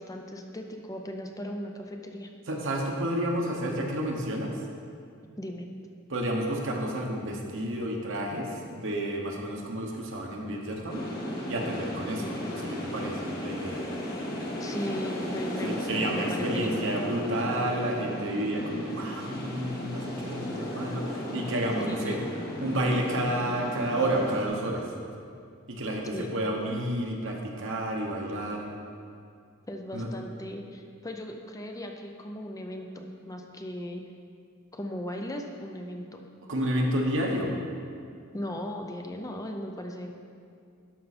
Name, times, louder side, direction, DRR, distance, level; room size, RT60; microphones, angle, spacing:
voice 1, 0.0-2.3 5.4-5.7 14.6-16.7 21.8-22.2 26.1-26.4 29.7-34.0 34.7-36.2 38.3-40.1, equal, 15° left, 3 dB, 0.5 m, -37 dB
voice 2, 2.5-4.6 6.1-11.1 11.5-13.8 15.6-22.2 22.6-24.9 25.7-28.7 29.9-30.1 36.5-37.5, right 1 dB, 65° right, 0 dB, 1.2 m, -30 dB
sound 1, 10.9-24.5, equal, 45° left, 1.6 m, -35 dB
12.0 x 5.5 x 4.3 m, 2.3 s
head